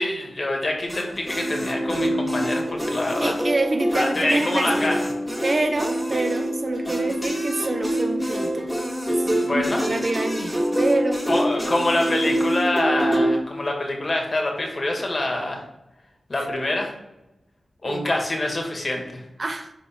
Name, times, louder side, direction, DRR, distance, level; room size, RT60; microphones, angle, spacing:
voice 1, 0.0-3.3 3.9-5.1 9.4-9.9 11.3-15.6 16.3-16.9 17.8-19.2, left 1 dB, 45° left, 1 dB, 2.0 m, -25 dB
sound 1, 0.9-13.4, equal, ahead, 2.0 m, -25 dB
voice 2, 3.2-5.0 5.4-8.7 9.2-11.2 16.4-16.5 17.8-18.1 19.4-19.7, right 2 dB, 45° right, 7 dB, 0.8 m, -27 dB
10.5 x 3.8 x 3.7 m, 0.93 s
wide cardioid pair, 75°, 0 cm